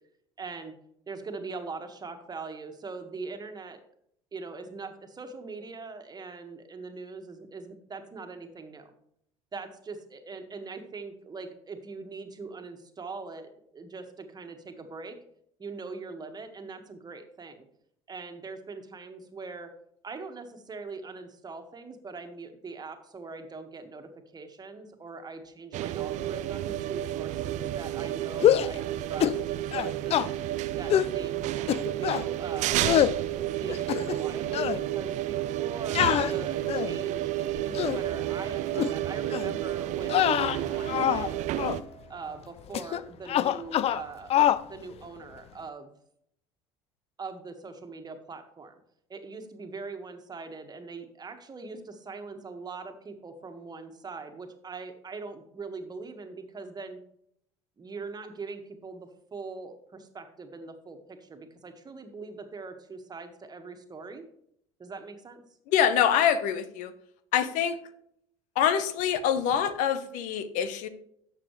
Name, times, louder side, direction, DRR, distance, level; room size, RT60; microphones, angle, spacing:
voice 1, 0.4-0.7 1.1-3.8 4.3-8.9 9.5-15.2 15.6-17.7 18.1-19.7 20.0-30.2 30.8-31.5 32.0-41.5 42.1-44.4 44.6-45.9 47.2-48.8 49.1-57.0 57.8-64.3 64.8-65.4, right 4 dB, 30° right, 6 dB, 1.7 m, -42 dB
sound 1, 25.7-41.8, right 13 dB, 55° right, 0.6 m, -31 dB
sound 2, 28.3-28.8 29.2-29.4 29.7-30.3 30.9-31.1 31.7-32.3 32.8-33.2 33.7-34.3 34.5-34.8 35.9-37.0 37.6-38.0 38.7-38.9 39.3-39.5 40.0-41.3 41.6-41.8 42.7-43.0 43.3-44.0 44.3-44.6, left 11 dB, 45° left, 0.5 m, -25 dB
sound 3, 37.3-42.4, right 7 dB, 75° right, 1.5 m, -49 dB
voice 2, 65.7-66.9 67.3-67.8 68.6-70.9, left 9 dB, 65° left, 12 dB, 1.0 m, -25 dB
12.0 x 7.6 x 3.3 m, 0.71 s
hypercardioid pair, 70°, 14 cm